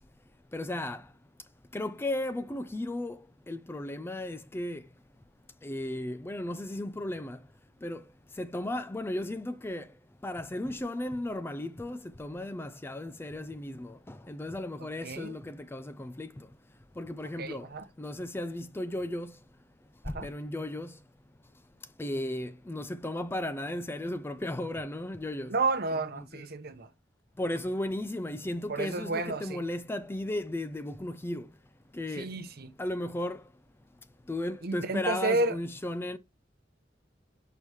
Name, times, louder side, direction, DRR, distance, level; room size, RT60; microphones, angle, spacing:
voice 1, 0.5-1.0 1.7-3.2 3.5-4.8 5.6-7.4 7.8-8.0 8.4-9.9 10.2-16.5 17.0-17.7 18.0-19.3 20.1-20.9 22.0-25.5 26.1-26.4 27.4-31.5 31.9-32.3 32.8-33.4 34.3-36.2, left 1 dB, 15° left, 0.4 m, -35 dB
voice 2, 15.0-15.4 17.4-17.8 20.1-20.3 25.5-26.9 28.7-29.6 32.2-32.7 34.6-35.6, right 3 dB, 55° right, 0.9 m, -31 dB
4.9 x 4.7 x 5.5 m
head